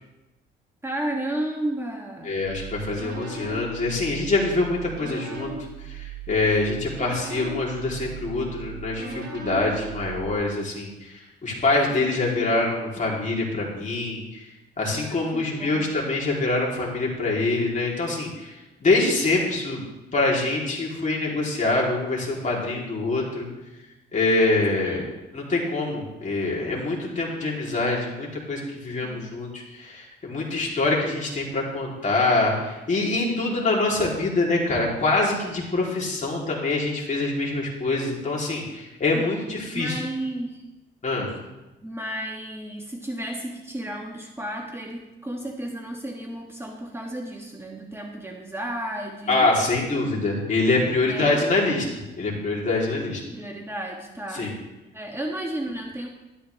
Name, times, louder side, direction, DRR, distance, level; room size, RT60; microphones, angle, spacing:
voice 1, 0.8-2.3 14.9-15.8 24.8-25.1 29.0-29.3 39.1-40.6 41.8-49.5 51.0-51.5 53.3-54.5 54.9-56.1, right 1 dB, 10° right, 0 dB, 1.5 m, -33 dB
voice 2, 2.3-5.5 6.3-10.9 11.4-14.2 14.8-18.5 18.8-19.8 20.1-23.5 24.1-25.0 25.3-40.0 41.0-41.3 49.3-51.9 52.2-53.2 54.3-54.5, left 2 dB, 40° left, -3 dB, 3.5 m, -25 dB
sound 1, 2.4-10.3, right 5 dB, 55° right, 4.9 m, -38 dB
12.5 x 12.0 x 3.5 m, 1.0 s
cardioid pair, 90°, 20 cm